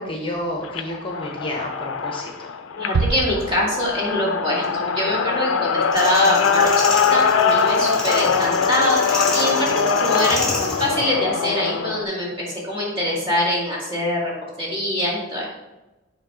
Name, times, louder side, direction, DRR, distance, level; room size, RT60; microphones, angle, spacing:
voice 1, 0.0-2.5, left 1 dB, 25° left, 1 dB, 0.8 m, -30 dB
sound 1, 0.6-12.0, left 6 dB, 85° left, 0.4 m, -22 dB
voice 2, 2.8-14.3 14.6-15.4, left 1 dB, 30° right, -5 dB, 2.1 m, -24 dB
sound 2, 2.9-4.3, right 4 dB, 50° right, 0.3 m, -26 dB
Night sounds in an Indian forest, 5.9-10.9, left 2 dB, 5° left, 1.4 m, -30 dB
7.4 x 3.1 x 4.9 m, 1.0 s
head